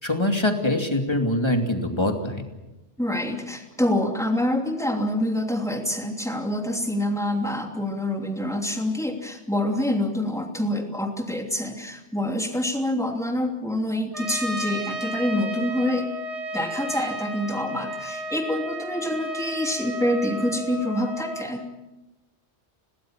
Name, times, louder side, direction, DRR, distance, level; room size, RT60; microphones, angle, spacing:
voice 1, 0.0-2.4, left 1 dB, 25° left, 4 dB, 2.7 m, -23 dB
voice 2, 3.0-16.1 16.5-21.6, left 1 dB, 5° left, 2 dB, 3.0 m, -26 dB
Trumpet, 14.1-21.5, equal, 65° right, 3.2 m, -33 dB
27.0 x 18.5 x 7.4 m, 1.1 s
omnidirectional pair, 1.2 m